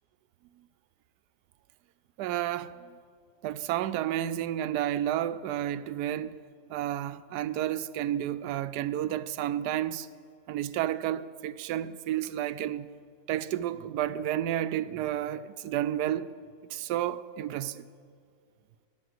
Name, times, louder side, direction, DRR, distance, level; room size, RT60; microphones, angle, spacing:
voice 1, 2.2-2.9 3.4-6.4 6.7-10.1 10.5-12.9 13.3-16.3 16.7-17.9, right 12 dB, 80° right, 1.1 m, -31 dB
17.0 x 11.0 x 8.0 m
omnidirectional pair, 1.8 m